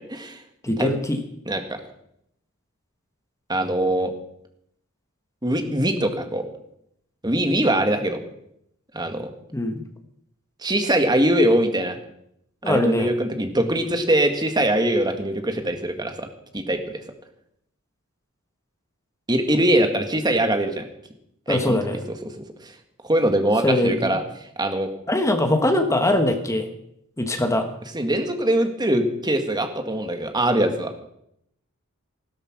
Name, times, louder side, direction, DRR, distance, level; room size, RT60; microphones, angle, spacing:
voice 1, 0.1-0.4 0.8-0.9 1.5-1.6 3.5-4.1 5.4-6.4 7.2-8.2 8.9-9.3 10.6-12.0 12.7-16.3 16.5-17.0 19.3-20.8 21.5-21.8 22.6-22.7 23.0-24.9 27.9-30.9, right 1 dB, 20° right, 6 dB, 1.8 m, -22 dB
voice 2, 0.6-1.2 9.5-9.8 12.6-13.1 21.5-22.0 23.6-24.1 25.1-26.7 27.2-27.7, left 1 dB, 15° left, 6 dB, 1.4 m, -22 dB
16.0 x 13.0 x 6.1 m, 0.75 s
head